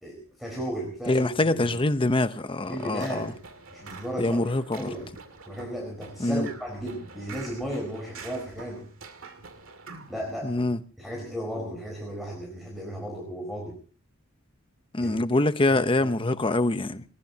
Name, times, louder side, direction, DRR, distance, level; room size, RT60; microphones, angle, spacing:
voice 1, 0.0-1.7 2.7-3.4 3.7-5.1 5.5-8.8 10.1-10.6 11.0-13.7 15.0-15.2 15.7-16.1, equal, ahead, 4.4 m, -35 dB
voice 2, 1.1-3.3 4.2-4.9 6.2-6.5 10.4-10.8 14.9-17.0, left 2 dB, 25° left, 0.8 m, -24 dB
sound 1, 2.6-10.3, right 4 dB, 65° right, 2.3 m, -46 dB
20.0 x 20.0 x 2.8 m
head